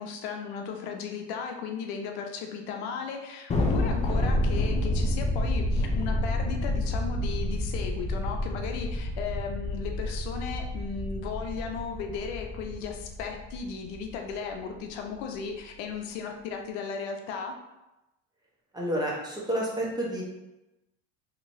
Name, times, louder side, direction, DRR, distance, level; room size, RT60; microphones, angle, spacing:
voice 1, 0.0-17.5, left 6 dB, 85° left, 3 dB, 0.6 m, -36 dB
Thunder, 3.5-14.1, left 1 dB, 20° left, 0.5 m, -29 dB
voice 2, 18.7-20.2, right 1 dB, 15° right, -4 dB, 0.9 m, -29 dB
3.0 x 2.8 x 2.6 m, 0.97 s
supercardioid pair, 100°, 31 cm